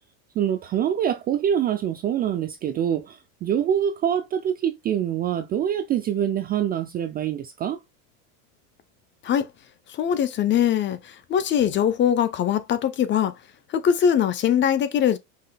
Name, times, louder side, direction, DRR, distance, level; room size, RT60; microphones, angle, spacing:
voice 1, 0.4-7.8, right 9 dB, 25° right, 0.3 m, -25 dB
voice 2, 9.9-13.3 13.7-15.2, left 9 dB, 25° left, 0.6 m, -22 dB
5.5 x 3.9 x 2.2 m
supercardioid pair, 130°, 41 cm